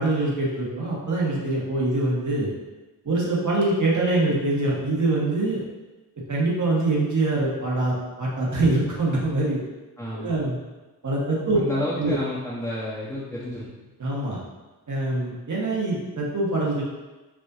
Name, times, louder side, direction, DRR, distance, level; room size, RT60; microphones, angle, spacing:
voice 1, 0.0-2.5 3.0-5.6 6.3-9.6 10.2-10.6 11.0-11.6 12.0-12.1 14.0-14.4 14.9-16.8, right 2 dB, 50° right, -5 dB, 1.3 m, -24 dB
voice 2, 10.0-10.4 11.5-13.9, left 1 dB, 5° left, -8 dB, 0.8 m, -31 dB
4.8 x 2.5 x 2.7 m, 1.1 s
cardioid pair, 45°, 39 cm